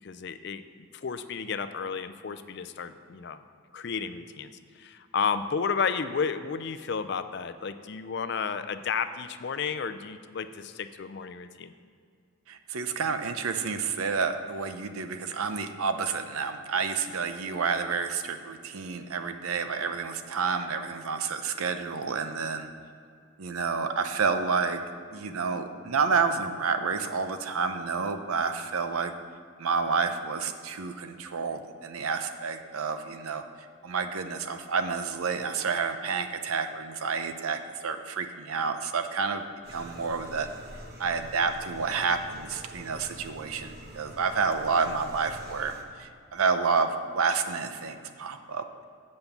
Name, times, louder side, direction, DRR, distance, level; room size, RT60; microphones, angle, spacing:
voice 1, 0.0-3.4 3.7-4.5 4.8-11.7, left 6 dB, 50° left, 11 dB, 0.4 m, -32 dB
voice 2, 12.5-22.7 23.4-24.8 25.1-29.1 29.6-33.4 33.8-39.4 39.7-40.5 41.0-48.8, right 5 dB, 85° right, 8 dB, 0.6 m, -29 dB
sound 1, 39.6-45.8, equal, 45° right, 1.0 m, -46 dB
8.1 x 5.3 x 7.0 m, 2.3 s
head